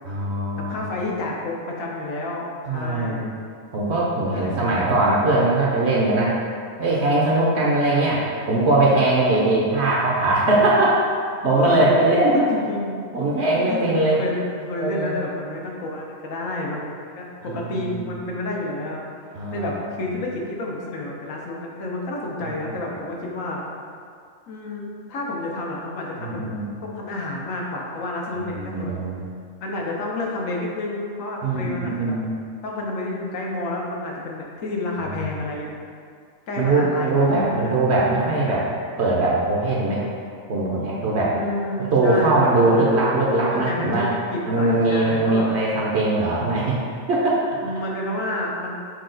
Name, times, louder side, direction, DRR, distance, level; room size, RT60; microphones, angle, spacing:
voice 1, 0.1-0.9 2.7-3.3 3.7-6.4 6.8-11.0 11.4-12.4 13.1-14.2 14.8-15.1 17.5-18.0 19.3-19.7 26.2-26.7 28.6-29.2 31.4-32.3 36.6-38.7 39.0-40.0 40.5-41.3 41.9-44.1 44.4-46.8 47.1-47.4, right 2 dB, 65° right, -5 dB, 0.8 m, -21 dB
voice 2, 0.6-3.3 4.3-4.8 7.6-8.1 10.4-10.7 11.5-11.9 12.3-13.0 13.6-19.1 19.5-23.6 24.5-26.5 26.8-28.9 29.6-32.2 32.6-35.7 36.5-37.5 41.3-42.8 43.5-44.0 44.3-45.5 47.6-48.8, left 2 dB, 85° left, -2 dB, 1.2 m, -30 dB
6.1 x 2.3 x 3.8 m, 2.3 s
omnidirectional pair, 1.3 m